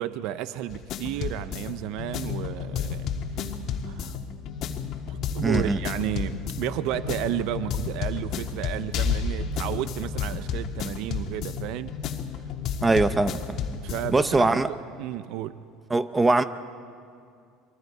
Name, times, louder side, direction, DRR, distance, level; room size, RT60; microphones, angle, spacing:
voice 1, 0.0-3.5 3.8-4.2 5.1-12.0 13.8-15.6, right 12 dB, 70° right, 13 dB, 0.7 m, -32 dB
sound 1, 0.7-14.4, left 6 dB, 55° left, 1.7 m, -32 dB
voice 2, 5.4-5.8 12.8-13.4 14.1-14.7 15.9-16.4, right 2 dB, 15° right, 12 dB, 0.7 m, -21 dB
28.5 x 22.5 x 4.8 m, 2.4 s
supercardioid pair, 105°, 0 cm